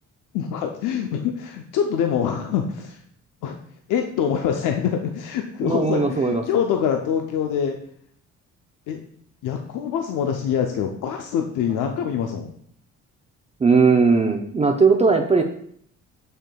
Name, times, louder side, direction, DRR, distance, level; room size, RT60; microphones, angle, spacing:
voice 1, 0.3-3.0 3.4-3.6 3.9-7.8 8.9-9.0 9.4-12.5, left 8 dB, 90° left, 4 dB, 0.6 m, -25 dB
voice 2, 5.6-6.4 13.6-15.4, right 4 dB, 20° right, 3 dB, 0.5 m, -18 dB
6.6 x 6.5 x 2.3 m, 0.64 s
cardioid pair, 90°, 30 cm